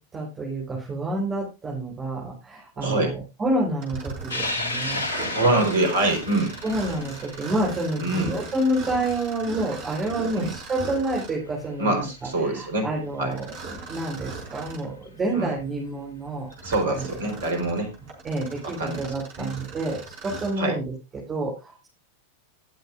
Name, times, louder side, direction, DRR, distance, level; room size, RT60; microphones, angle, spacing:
voice 1, 0.0-5.4 6.6-12.1 12.4-17.0 18.2-21.9, right 1 dB, 20° right, -2 dB, 4.1 m, -29 dB
voice 2, 2.8-3.1 5.3-6.5 8.0-8.3 10.4-10.5 11.8-12.9 13.2-13.3 15.3-15.5 16.6-17.9 18.6-19.0 19.4-19.5 20.6-20.7, right 2 dB, 65° right, 5 dB, 3.9 m, -24 dB
Mechanisms, 3.8-11.5 13.3-14.9 15.5-15.6 16.3-20.6, right 4 dB, 40° right, 5.4 m, -39 dB
sound 1, 4.3-11.0 11.4-11.5 12.8-12.9 15.0-15.1 16.5-16.8, left 2 dB, 75° left, 1.8 m, -34 dB
19.0 x 7.8 x 2.5 m, 0.27 s
figure-of-eight pair, 90°, 0 cm